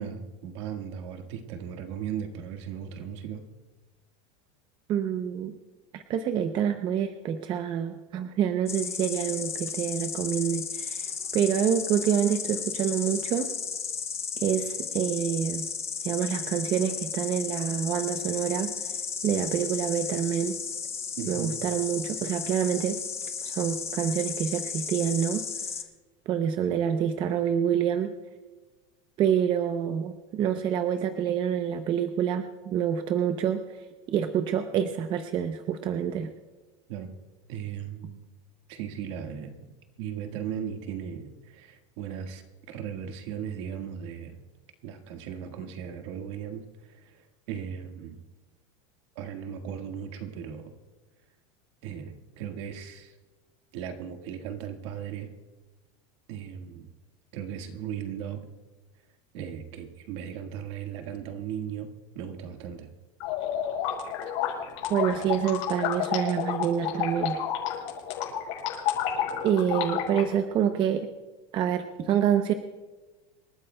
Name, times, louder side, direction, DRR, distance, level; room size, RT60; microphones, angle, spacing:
voice 1, 0.0-3.4 21.2-21.5 36.9-37.1 37.5-38.2 38.7-44.4 44.8-48.2 49.1-50.8 51.8-53.1 53.7-55.3 56.3-56.9 57.3-58.4 59.3-62.9, right 8 dB, 60° right, 5 dB, 1.7 m, -37 dB
voice 2, 4.9-5.5 5.9-13.5 14.4-15.7 16.0-18.7 19.2-20.6 21.3-23.0 23.4-25.4 26.3-28.1 29.2-33.6 34.1-36.3 64.9-67.4 69.4-71.1 71.5-72.5, right 9 dB, 30° right, 7 dB, 0.6 m, -27 dB
Insect, 8.7-25.8, left 6 dB, 15° left, 0.6 m, -34 dB
sound 1, 63.2-70.2, left 9 dB, 65° left, 5.5 m, -30 dB
27.5 x 13.0 x 2.3 m, 1.2 s
supercardioid pair, 165°, 16 cm